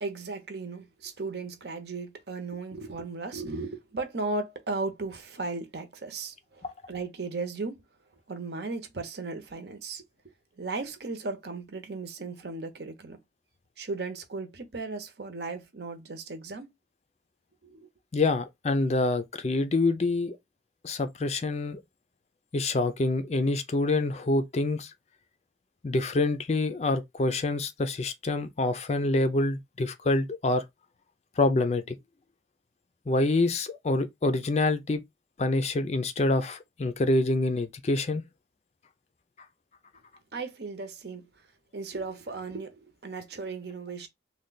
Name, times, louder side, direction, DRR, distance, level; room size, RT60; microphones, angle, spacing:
voice 1, 0.0-7.8 8.3-10.0 10.6-13.2 13.8-16.7 17.6-17.9 40.3-41.3 41.7-44.1, right 3 dB, 65° right, 0.8 m, -36 dB
voice 2, 18.1-20.4 20.8-21.8 22.5-24.9 25.8-30.6 31.4-32.0 33.1-35.0 35.4-38.2, left 2 dB, 35° left, 0.4 m, -26 dB
3.2 x 2.2 x 3.8 m
head